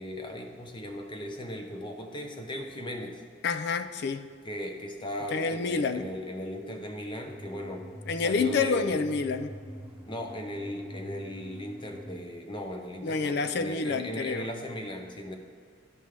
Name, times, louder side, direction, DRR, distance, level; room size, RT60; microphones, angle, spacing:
voice 1, 0.0-3.2 4.4-7.9 8.2-9.0 10.1-15.3, equal, 25° left, 3 dB, 0.8 m, -37 dB
voice 2, 3.4-4.3 5.3-6.1 8.1-9.6 13.0-14.5, left 4 dB, 55° left, 10 dB, 0.4 m, -28 dB
sound 1, 7.2-12.2, equal, ahead, 1.6 m, -45 dB
12.5 x 5.3 x 3.3 m, 2.1 s
head